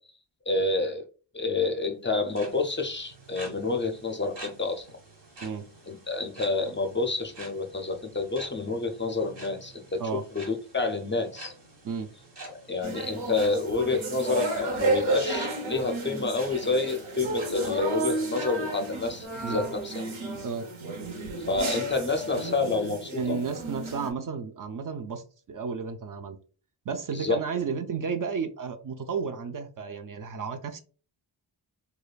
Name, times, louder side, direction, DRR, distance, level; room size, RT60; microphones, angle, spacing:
voice 1, 0.5-1.0 1.3-4.9 5.9-10.0 10.3-11.5 12.5-20.0 21.5-23.4 27.1-27.4, left 3 dB, 25° left, 5 dB, 0.5 m, -28 dB
sound 1, 2.1-19.3, right 2 dB, 65° right, 1.6 m, -48 dB
sound 2, 12.8-24.1, right 2 dB, 90° right, 0.9 m, -32 dB
voice 2, 23.1-26.4 26.9-30.8, right 5 dB, 45° right, 8 dB, 0.4 m, -32 dB
4.8 x 2.3 x 2.3 m, 0.39 s
wide cardioid pair, 90°, 46 cm